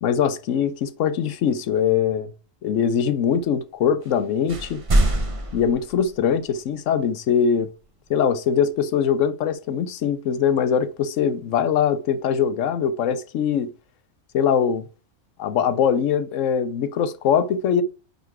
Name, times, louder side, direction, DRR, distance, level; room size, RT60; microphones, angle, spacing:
voice 1, 0.0-2.3 2.6-4.8 5.5-7.7 8.1-13.7 14.3-14.9 15.4-17.8, left 7 dB, 70° left, 1.0 m, -22 dB
sound 1, 4.0-4.2 4.5-6.5, right 1 dB, 25° right, 0.9 m, -24 dB
9.3 x 4.1 x 4.6 m
omnidirectional pair, 1.4 m